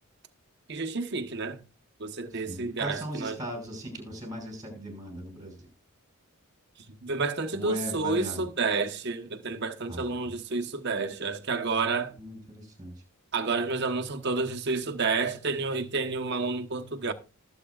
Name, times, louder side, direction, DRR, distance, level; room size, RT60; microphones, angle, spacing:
voice 1, 0.7-1.6 2.0-3.4 7.0-12.1 13.3-17.1, right 4 dB, 50° right, 1.1 m, -30 dB
voice 2, 2.5-5.7 7.5-8.4 9.9-10.1 12.1-13.0, equal, 20° right, 5.7 m, -38 dB
20.0 x 8.2 x 2.4 m
head